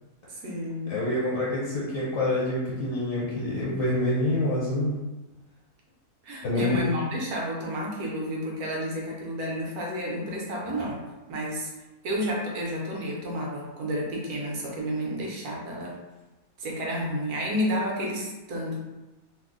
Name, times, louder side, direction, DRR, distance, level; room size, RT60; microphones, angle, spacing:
voice 1, 0.3-1.0 6.2-11.0 11.3-11.7 12.0-16.0 16.6-18.8, equal, 75° right, -2 dB, 1.3 m, -31 dB
voice 2, 0.9-5.0 6.4-6.8, left 1 dB, 65° left, -7 dB, 1.1 m, -26 dB
3.0 x 2.0 x 3.7 m, 1.1 s
omnidirectional pair, 1.6 m